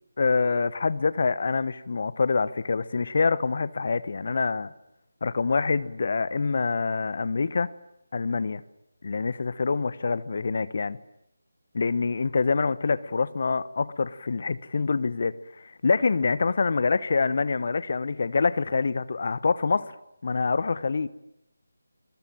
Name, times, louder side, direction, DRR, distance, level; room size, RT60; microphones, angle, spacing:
voice 1, 0.2-4.7 5.2-7.7 8.1-8.6 9.0-11.0 11.7-19.9 20.2-21.1, left 4 dB, 50° left, 17 dB, 1.1 m, -26 dB
28.5 x 22.5 x 9.1 m, 0.81 s
figure-of-eight pair, 160°, 0 cm